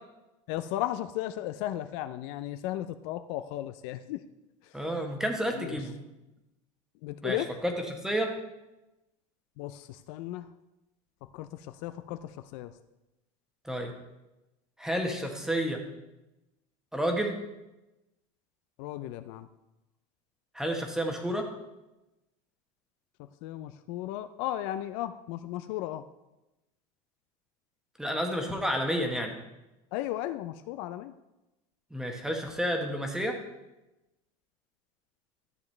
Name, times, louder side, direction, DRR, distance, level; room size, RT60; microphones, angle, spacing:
voice 1, 0.5-4.2 5.5-5.8 7.0-7.5 9.6-10.5 11.3-12.7 18.8-19.5 23.4-26.0 29.9-31.1, left 14 dB, 65° left, 10 dB, 0.5 m, -35 dB
voice 2, 4.7-5.9 7.2-7.4 7.6-8.3 13.6-13.9 14.8-15.8 16.9-17.4 20.5-21.5 28.0-29.4 31.9-33.4, equal, 5° right, 3 dB, 1.2 m, -30 dB
13.0 x 7.1 x 3.2 m, 0.99 s
cardioid pair, 150°, 16 cm